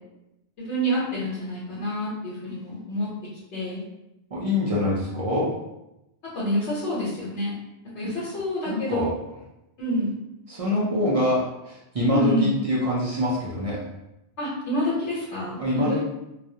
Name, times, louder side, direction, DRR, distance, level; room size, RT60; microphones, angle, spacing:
voice 1, 0.6-3.1 3.5-3.8 6.3-7.5 7.9-9.1 9.8-10.1 12.1-12.6 14.4-16.1, equal, 80° left, -8 dB, 1.0 m, -27 dB
voice 2, 4.3-5.5 8.0-8.1 8.7-9.1 10.5-13.8 15.6-16.1, left 1 dB, 55° right, -5 dB, 0.4 m, -25 dB
2.3 x 2.0 x 2.7 m, 0.90 s
omnidirectional pair, 1.2 m